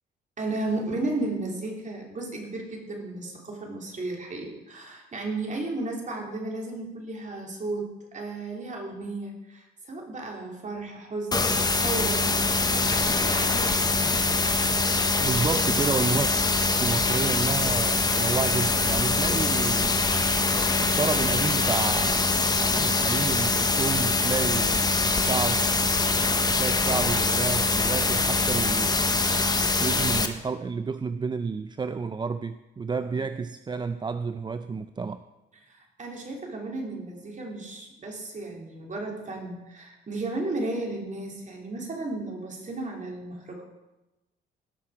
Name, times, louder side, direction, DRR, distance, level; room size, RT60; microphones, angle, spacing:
voice 1, 0.4-14.1 33.0-33.2 35.6-43.6, right 2 dB, 40° right, 0 dB, 3.1 m, -34 dB
sound 1, 11.3-30.3, left 3 dB, 20° left, 1.0 m, -24 dB
voice 2, 15.2-16.3 16.8-20.1 20.8-25.7 26.5-29.0 29.8-35.2, right 5 dB, 20° right, 12 dB, 0.4 m, -30 dB
17.5 x 6.1 x 4.9 m, 1.0 s
cardioid pair, 90°, 20 cm